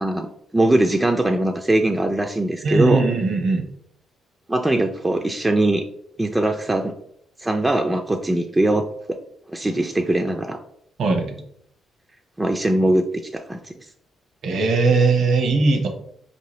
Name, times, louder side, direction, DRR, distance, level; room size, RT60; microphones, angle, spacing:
voice 1, 0.0-3.0 4.5-5.8 6.2-6.9 7.4-9.2 9.5-10.6 12.4-13.9, right 1 dB, 15° right, 4 dB, 0.3 m, -21 dB
voice 2, 2.6-3.7 11.0-11.4 14.4-15.9, right 3 dB, 65° right, 4 dB, 0.8 m, -19 dB
4.9 x 2.7 x 3.0 m, 0.69 s
cardioid pair, 90°, 0 cm